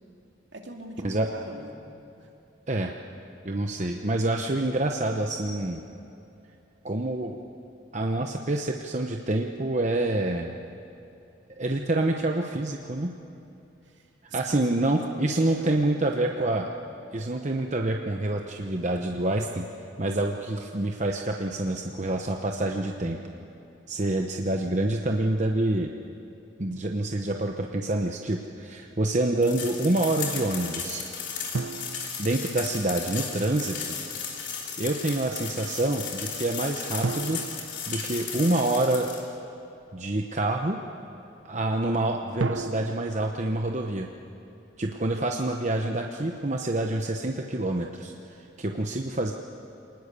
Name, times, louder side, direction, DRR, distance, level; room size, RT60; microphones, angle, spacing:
voice 1, 0.5-2.3 13.8-14.6 14.9-16.6, right 2 dB, 70° right, 2 dB, 2.6 m, -42 dB
voice 2, 3.4-5.8 6.8-7.4 7.9-10.5 11.5-13.1 14.3-16.7 17.1-19.7 20.0-23.2 23.9-25.9 26.6-31.0 32.2-33.9 34.8-37.4 37.9-39.1 39.9-40.8 41.4-44.1 44.8-49.3, right 2 dB, 40° right, 2 dB, 0.9 m, -27 dB
sound 1, 29.4-39.2, left 6 dB, 70° left, 3.5 m, -35 dB
sound 2, 31.5-33.2 37.0-38.9 42.4-44.7, right 3 dB, 85° right, 0.6 m, -35 dB
24.5 x 19.5 x 6.9 m, 2.8 s
head